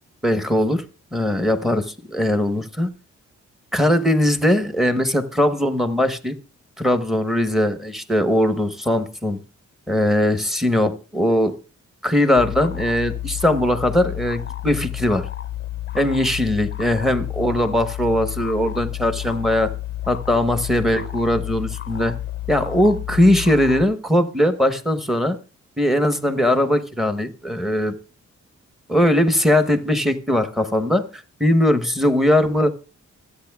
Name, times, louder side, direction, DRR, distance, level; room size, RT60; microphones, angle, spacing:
voice 1, 0.2-0.8 1.1-2.9 3.7-6.4 6.8-9.4 9.9-11.5 12.0-15.3 15.9-19.7 20.1-22.2 22.5-25.4 25.8-27.9 28.9-32.7, left 1 dB, ahead, 1.1 m, -20 dB
sound 1, 12.4-23.9, left 13 dB, 40° left, 0.5 m, -31 dB
24.5 x 8.8 x 2.3 m
cardioid pair, 95°, 29 cm